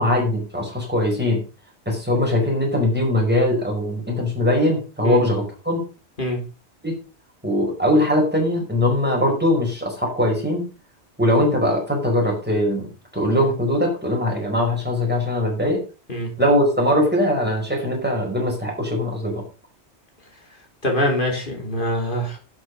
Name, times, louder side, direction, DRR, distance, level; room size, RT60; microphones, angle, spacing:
voice 1, 0.0-1.4 1.8-5.8 6.8-6.9 7.4-10.6 11.2-15.8 16.4-19.4, left 1 dB, 10° right, 0 dB, 5.0 m, -21 dB
voice 2, 20.8-22.4, equal, 50° left, 1 dB, 3.3 m, -23 dB
11.0 x 7.7 x 5.4 m, 0.34 s
omnidirectional pair, 1.1 m